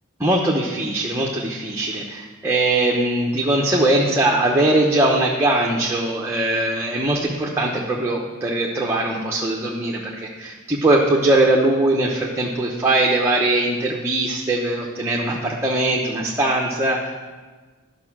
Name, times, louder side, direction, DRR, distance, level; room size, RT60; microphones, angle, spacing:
voice 1, 0.2-17.1, right 1 dB, 15° right, -2 dB, 0.9 m, -21 dB
12.0 x 6.2 x 6.0 m, 1.4 s
head